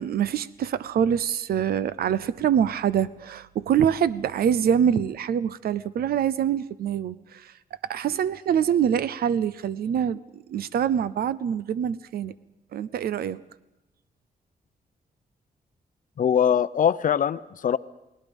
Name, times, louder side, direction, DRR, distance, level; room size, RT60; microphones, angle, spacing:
voice 1, 0.0-7.5 7.9-12.3 12.7-13.4, right 8 dB, 85° right, 17 dB, 0.7 m, -25 dB
voice 2, 16.2-17.8, left 8 dB, 60° left, 15 dB, 0.7 m, -22 dB
29.5 x 19.5 x 5.4 m, 0.94 s
cardioid pair, 110°, 15 cm